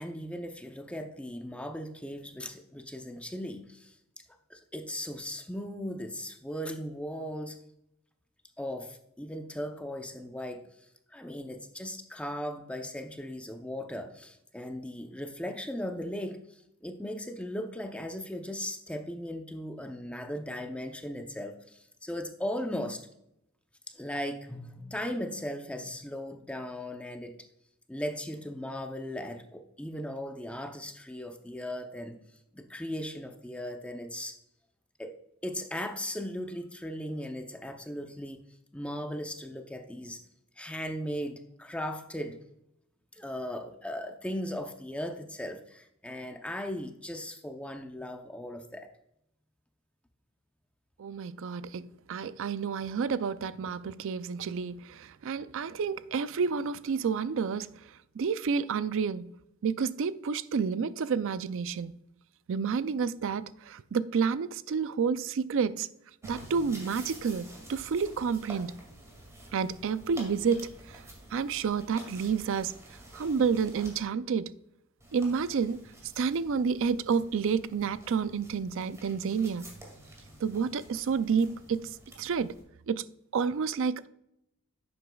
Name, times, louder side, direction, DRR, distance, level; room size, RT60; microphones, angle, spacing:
voice 1, 0.0-3.9 4.5-7.6 8.6-10.6 11.1-23.1 23.9-27.3 27.9-32.2 32.5-34.4 35.0-35.2 35.4-38.4 38.7-40.2 40.6-42.4 43.1-48.9, equal, 5° left, 0.6 m, -37 dB
voice 2, 51.0-57.8 58.2-59.3 59.6-61.9 62.5-65.9 66.2-68.7 69.5-71.0 71.3-72.7 73.1-74.5 75.1-75.8 76.2-79.7 80.4-81.9 82.2-82.6 82.9-83.1 83.3-84.1, right 6 dB, 60° right, 0.4 m, -30 dB
sound 1, 66.2-74.0 75.0-82.6, right 1 dB, 15° right, 2.2 m, -50 dB
11.0 x 8.0 x 2.3 m
head